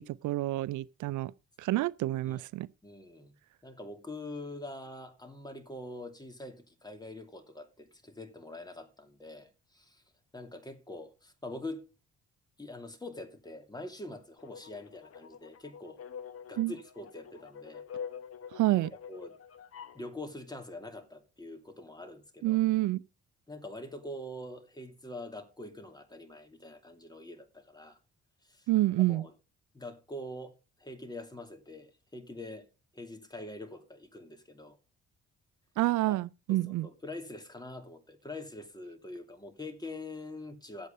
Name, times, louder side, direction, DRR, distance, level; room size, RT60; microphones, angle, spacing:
voice 1, 0.0-1.3 1.6-2.7 16.6-16.7 18.5-18.9 22.4-23.0 28.7-29.3 35.8-36.9, right 16 dB, 80° right, 0.5 m, -28 dB
voice 2, 2.8-3.3 3.6-10.0 10.3-11.9 12.6-16.0 16.5-17.8 19.1-19.3 19.9-22.6 23.5-28.0 28.4-28.7 29.1-29.3 29.7-32.7 32.9-34.8 36.1-36.2 36.5-40.9, left 2 dB, 15° left, 2.7 m, -44 dB
sound 1, 14.4-20.1, left 7 dB, 50° left, 1.2 m, -46 dB
11.0 x 8.3 x 5.3 m
cardioid pair, 90°, 30 cm